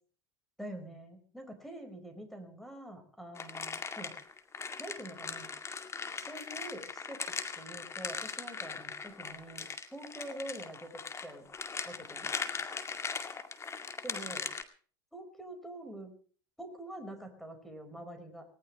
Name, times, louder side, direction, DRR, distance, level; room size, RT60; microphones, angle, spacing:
voice 1, 0.6-4.1 4.8-5.5 6.2-7.2 7.6-10.9 11.2-11.5 11.9-12.3 14.0-14.5 15.1-16.1 16.6-18.4, right 1 dB, ahead, 6 dB, 4.8 m, -45 dB
sound 1, 3.3-14.6, left 5 dB, 25° left, 2.1 m, -40 dB
19.5 x 19.0 x 3.2 m, 0.43 s
hypercardioid pair, 80°, 12 cm